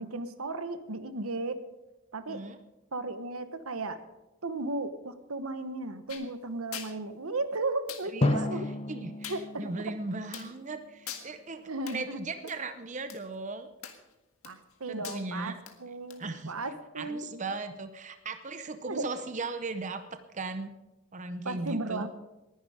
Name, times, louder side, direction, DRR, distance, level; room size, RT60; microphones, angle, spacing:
voice 1, 0.0-1.6 2.1-2.4 2.9-4.1 4.4-8.6 9.3-9.9 11.7-12.2 14.4-17.2 18.9-19.1 21.4-22.1, right 2 dB, 80° right, 11 dB, 1.2 m, -35 dB
voice 2, 2.3-2.6 8.0-8.6 8.9-13.7 14.9-15.6 16.2-16.5 17.0-20.7 21.1-22.1, right 3 dB, 35° right, 9 dB, 0.7 m, -37 dB
sound 1, 6.1-6.3 6.7-6.9 7.9-8.1 9.2-9.4 10.3-10.5 11.1-11.3 11.9-12.0 12.5-12.6 13.1-13.2 13.8-14.1 14.4-14.7 15.0-15.2 15.7-15.8 16.1-16.2, left 9 dB, 90° left, 1.8 m, -41 dB
Drum, 8.2-11.1, left 2 dB, 25° left, 0.6 m, -32 dB
19.5 x 11.0 x 5.0 m, 1.0 s
head